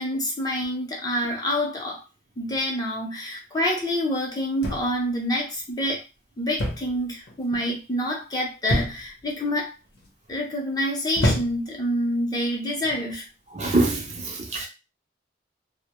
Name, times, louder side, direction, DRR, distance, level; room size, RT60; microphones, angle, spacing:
voice 1, 0.0-2.0 2.4-6.0 6.4-9.7 10.3-13.2, equal, 20° left, 0.6 m, -27 dB
sound 1, 4.6-5.1 6.6-7.0 7.3-7.7 8.7-9.2 10.0-10.3 11.2-11.8 12.7-13.0, equal, 60° left, 0.7 m, -27 dB
voice 2, 13.5-14.7, right 2 dB, 40° right, 0.4 m, -24 dB
2.2 x 2.1 x 2.8 m
head